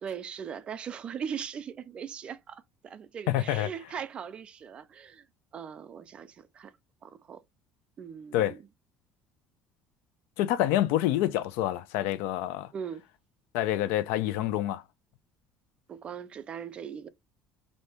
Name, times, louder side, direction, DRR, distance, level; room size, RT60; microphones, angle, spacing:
voice 1, 0.0-5.3 5.5-6.7 7.0-7.4 8.0-8.7 12.7-13.0 15.9-17.1, right 7 dB, 30° right, 0.3 m, -39 dB
voice 2, 3.3-3.7 8.3-8.5 10.4-12.7 13.5-14.8, left 13 dB, 85° left, 0.4 m, -27 dB
3.3 x 2.6 x 2.8 m
cardioid pair, 145°, 3 cm